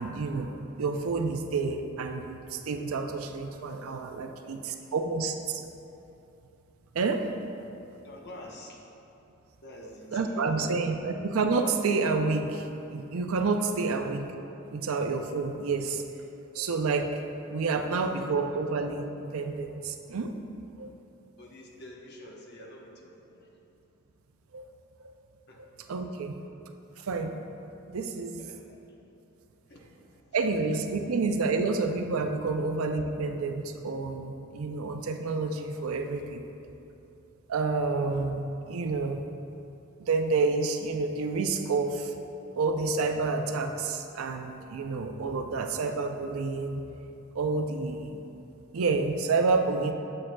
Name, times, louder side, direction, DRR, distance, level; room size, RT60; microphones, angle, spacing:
voice 1, 0.0-5.6 6.9-7.3 10.1-14.3 14.7-16.1 16.5-17.1 17.5-20.3 20.8-20.9 24.5-24.7 25.0-25.1 25.6-26.3 27.0-27.4 27.9-28.5 30.3-36.4 37.5-39.2 40.0-42.1 42.6-46.8 47.3-48.2 48.7-49.9, right 4 dB, 75° right, 6 dB, 0.5 m, -29 dB
voice 2, 4.2-4.7 8.0-8.8 9.6-11.0 13.8-14.0 17.8-18.1 18.5-18.6 21.4-23.5 25.5-25.6 25.9-26.2 28.4-28.8 29.7-30.5 31.0-31.1, left 1 dB, 50° left, -1 dB, 0.9 m, -47 dB
8.5 x 7.4 x 2.2 m, 2.8 s
head